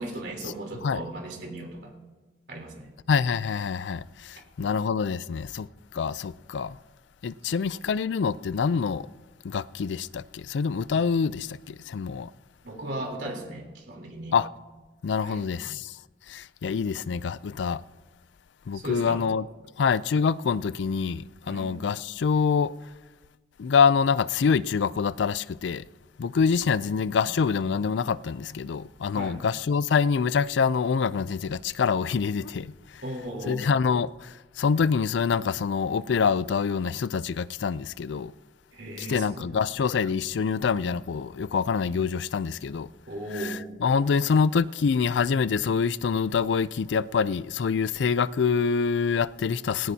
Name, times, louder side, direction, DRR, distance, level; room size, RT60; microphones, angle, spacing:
voice 1, 0.0-1.9 2.5-2.9 4.6-4.8 7.4-7.5 12.6-14.4 15.2-15.4 18.7-19.2 21.5-21.7 29.1-29.4 33.0-33.6 38.7-39.5 43.1-43.6, right 1 dB, 70° right, 3.5 m, -36 dB
voice 2, 3.1-5.7 5.9-6.8 7.2-9.1 9.4-12.3 14.3-14.5 15.0-16.0 16.3-17.8 18.7-19.4 19.8-22.7 23.6-25.8 26.2-33.0 33.5-38.3 39.0-42.9 43.3-49.9, left 6 dB, 75° left, 0.4 m, -26 dB
19.0 x 17.0 x 2.8 m
head